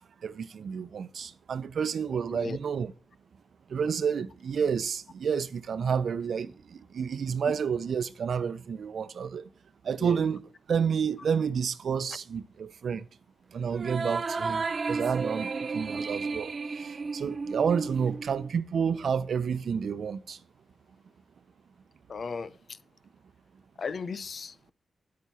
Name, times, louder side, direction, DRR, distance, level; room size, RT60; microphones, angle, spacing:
voice 1, 0.0-2.9 3.7-9.5 9.8-13.1 13.5-20.4, right 6 dB, 75° right, 0.8 m, -30 dB
sound 1, 13.7-18.5, right 4 dB, 55° right, 1.2 m, -33 dB
voice 2, 22.1-22.5 23.8-24.7, left 5 dB, 60° left, 0.7 m, -35 dB
9.6 x 8.5 x 4.3 m
cardioid pair, 65°, 0 cm